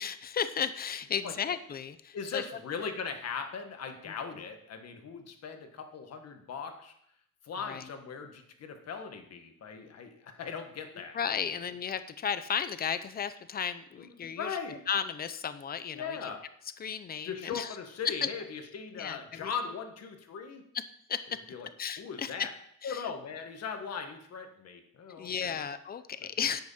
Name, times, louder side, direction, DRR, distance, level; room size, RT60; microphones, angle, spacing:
voice 1, 0.0-2.4 7.7-7.9 11.1-16.3 16.8-17.8 18.0-18.3 19.0-19.5 20.7-20.8 21.1-21.4 21.8-22.5 22.8-23.1 25.1-26.6, left 7 dB, 30° left, 12 dB, 0.6 m, -34 dB
voice 2, 2.1-6.9 7.4-11.2 14.0-14.8 15.9-16.4 17.2-20.6 21.5-21.7 22.0-22.5 22.8-25.6, left 6 dB, 50° left, 6 dB, 1.6 m, -39 dB
10.5 x 8.0 x 5.6 m, 0.71 s
cardioid pair, 160°, 33 cm